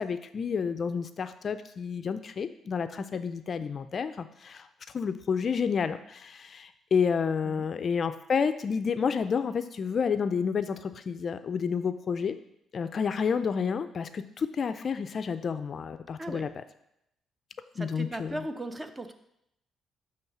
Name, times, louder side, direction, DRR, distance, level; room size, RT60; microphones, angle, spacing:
voice 1, 0.0-4.7 4.9-12.4 12.7-16.6 17.8-18.4, left 6 dB, 50° left, 11 dB, 0.4 m, -30 dB
voice 2, 17.8-19.1, right 1 dB, 20° right, 8 dB, 0.6 m, -38 dB
6.9 x 3.1 x 5.9 m, 0.78 s
cardioid pair, 90°, 0 cm